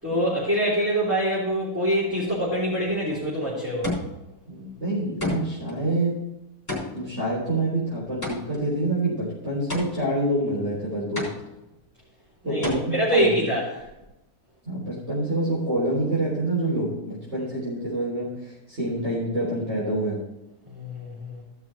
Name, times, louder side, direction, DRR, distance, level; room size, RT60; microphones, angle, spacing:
voice 1, 0.0-3.9 12.4-13.8 20.7-21.4, equal, 10° right, -10 dB, 3.5 m, -25 dB
sound 1, 2.8-3.2 3.8-4.4 5.2-5.7 6.7-8.7 9.7-10.3 11.2-11.8 12.6-12.7, left 2 dB, 25° left, 3.9 m, -31 dB
voice 2, 4.5-6.2 6.9-11.3 12.4-13.4 14.6-20.2, right 1 dB, 45° right, -8 dB, 4.2 m, -27 dB
15.5 x 6.1 x 4.4 m, 0.96 s
omnidirectional pair, 1.6 m